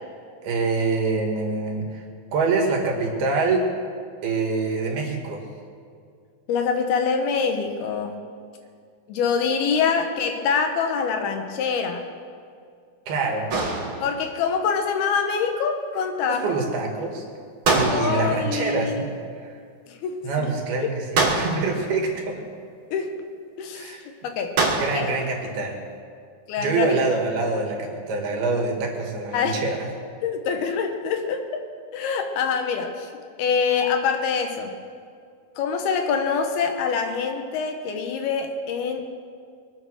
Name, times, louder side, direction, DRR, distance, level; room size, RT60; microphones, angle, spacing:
voice 1, 0.4-2.0 2.3-3.6 4.2-5.4 13.1-13.5 16.3-17.2 17.7-19.1 19.4-19.6 20.2-22.4 23.7-24.0 24.7-25.8 26.6-29.8, right 3 dB, 80° right, 1 dB, 3.9 m, -25 dB
voice 2, 6.5-8.2 9.1-12.0 14.0-16.6 17.9-19.1 19.9-20.5 20.8-20.9 22.9-23.2 23.6-24.0 24.2-24.6 24.9-25.1 26.5-27.0 29.3-29.6 30.2-31.5 31.9-33.1 33.4-34.7 35.6-39.0, left 6 dB, 85° left, 5 dB, 3.3 m, -25 dB
sound 1, 13.5-14.4 17.6-18.5 21.1-21.9 24.6-25.2, right 3 dB, 40° right, 2.2 m, -24 dB
23.5 x 8.9 x 6.4 m, 2.2 s
omnidirectional pair, 4.3 m